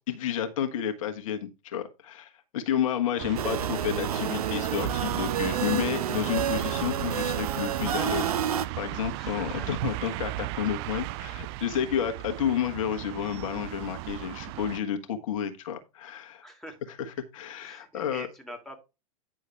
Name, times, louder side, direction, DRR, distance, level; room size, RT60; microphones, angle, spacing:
voice 1, 0.1-16.5 17.0-18.3, left 9 dB, 60° left, 6 dB, 1.4 m, -31 dB
sound 1, 3.2-14.8, right 19 dB, 40° right, 0.4 m, -35 dB
sound 2, 3.4-8.7, right 8 dB, 75° right, 0.9 m, -30 dB
voice 2, 9.1-9.7 16.4-16.9 17.6-18.8, equal, ahead, 3 dB, 2.6 m, -44 dB
9.9 x 6.2 x 3.4 m, 0.27 s
hypercardioid pair, 105°, 19 cm